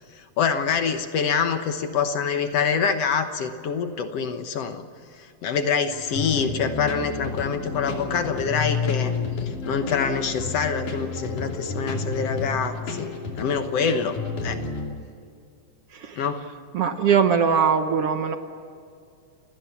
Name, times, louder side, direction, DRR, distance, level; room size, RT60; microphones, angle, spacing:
voice 1, 0.2-4.8 5.4-9.1 9.4-13.1 13.4-14.2 14.4-14.6 16.2-16.4, left 6 dB, 60° left, 8 dB, 2.0 m, -25 dB
sound 1, 5.9-14.9, left 4 dB, 90° left, 4.4 m, -30 dB
voice 2, 15.9-16.3 16.7-18.4, right 6 dB, 60° right, 7 dB, 1.7 m, -21 dB
29.0 x 19.5 x 7.1 m, 2.4 s
omnidirectional pair, 3.4 m